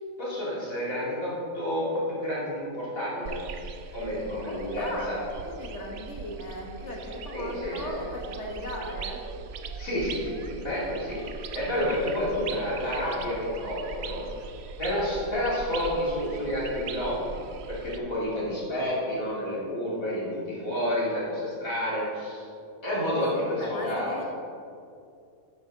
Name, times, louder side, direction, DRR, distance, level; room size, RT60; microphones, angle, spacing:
voice 1, 0.2-3.4 3.9-5.2 7.3-7.9 9.7-14.2 14.8-17.3 17.7-22.5 22.8-24.2, left 1 dB, 70° left, -7 dB, 3.4 m, -30 dB
sound 1, 3.2-18.0, right 5 dB, 60° right, 0.8 m, -40 dB
voice 2, 4.8-5.1 5.4-9.2 23.3-24.2, left 1 dB, 55° left, -1 dB, 1.7 m, -38 dB
11.5 x 9.3 x 3.8 m, 2.5 s
omnidirectional pair, 1.5 m